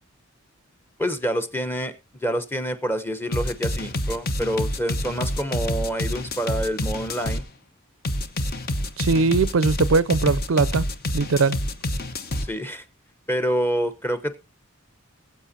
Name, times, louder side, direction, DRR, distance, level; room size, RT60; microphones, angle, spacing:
voice 1, 1.0-1.9 2.2-7.4 12.5-12.8 13.3-14.4, equal, 10° left, 0.9 m, -27 dB
sound 1, 3.3-7.4 8.0-12.5, left 1 dB, 45° left, 1.0 m, -27 dB
voice 2, 9.0-10.8 11.1-11.6, right 4 dB, 70° right, 0.5 m, -20 dB
20.5 x 7.9 x 2.7 m
head